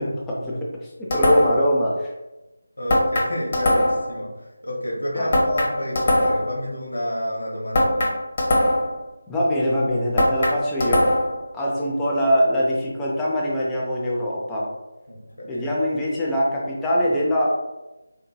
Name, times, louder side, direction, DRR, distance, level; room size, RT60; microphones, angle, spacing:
voice 1, 0.0-2.1 5.2-5.3 9.3-11.1 11.5-14.7 15.5-17.5, equal, 10° left, -5 dB, 0.5 m, -23 dB
sound 1, 1.1-1.7 2.9-4.1 5.3-6.5 7.7-9.0 10.2-11.4, left 1 dB, 35° left, 0.8 m, -20 dB
voice 2, 2.8-8.1 15.1-15.6, equal, 70° left, -3 dB, 0.9 m, -29 dB
4.4 x 2.7 x 2.3 m, 1.0 s
figure-of-eight pair, 160°, 0 cm